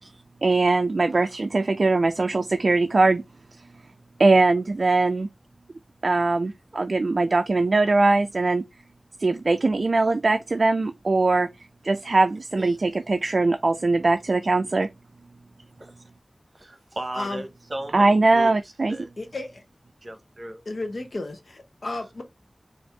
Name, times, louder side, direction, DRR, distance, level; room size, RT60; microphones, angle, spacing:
voice 1, 0.4-3.2 4.2-5.3 6.0-8.6 9.2-11.5 11.8-14.9 17.9-19.0, right 3 dB, 70° right, 0.3 m, -21 dB
voice 2, 16.6-18.5 18.9-19.1 20.0-20.6, right 1 dB, 50° right, 1.0 m, -36 dB
voice 3, 17.1-17.4 19.2-19.6 20.7-22.2, left 2 dB, 75° left, 0.8 m, -33 dB
4.3 x 2.5 x 3.3 m
wide cardioid pair, 60°, 0 cm